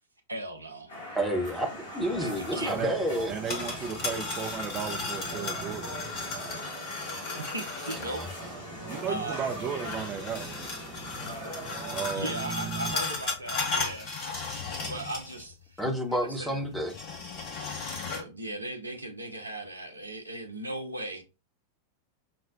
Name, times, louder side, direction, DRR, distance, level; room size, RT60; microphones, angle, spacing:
voice 1, 0.3-0.9 2.2-2.8 7.4-8.2 9.1-9.4 12.1-14.2 14.8-15.8 16.1-16.6 18.0-21.2, right 1 dB, 80° right, 0.5 m, -37 dB
sound 1, 0.9-12.1, equal, 60° left, 1.9 m, -41 dB
voice 2, 1.1-3.3 7.9-8.3 15.8-17.0, equal, ahead, 0.8 m, -30 dB
voice 3, 2.5-2.9 3.2-6.6 8.4-12.9, right 7 dB, 30° right, 0.5 m, -36 dB
sound 2, 3.2-8.3 9.8-15.5 15.8-15.9 16.8-18.2, left 3 dB, 45° left, 1.1 m, -35 dB
5.9 x 2.0 x 2.5 m
figure-of-eight pair, 90°, 0 cm